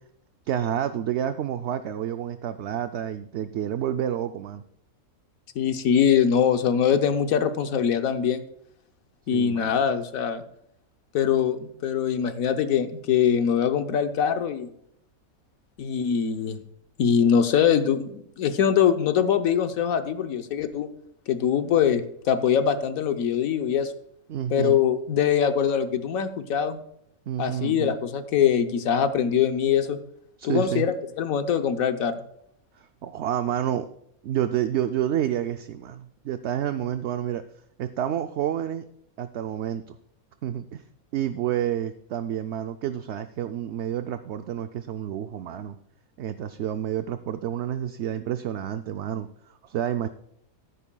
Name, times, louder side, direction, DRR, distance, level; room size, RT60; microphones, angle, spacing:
voice 1, 0.5-4.6 9.3-9.8 24.3-24.8 27.3-28.0 30.4-30.9 32.8-33.9 34.2-37.4 37.8-38.8 39.2-40.0 40.4-40.8 41.1-45.8 46.2-50.1, right 10 dB, 65° right, 9 dB, 0.7 m, -29 dB
voice 2, 5.6-8.4 9.3-10.4 11.1-14.7 15.8-16.6 17.0-20.9 21.3-23.9 24.5-26.8 27.4-30.0 30.4-32.1, left 8 dB, 75° left, 8 dB, 1.2 m, -23 dB
15.5 x 9.2 x 2.3 m, 0.72 s
omnidirectional pair, 1.5 m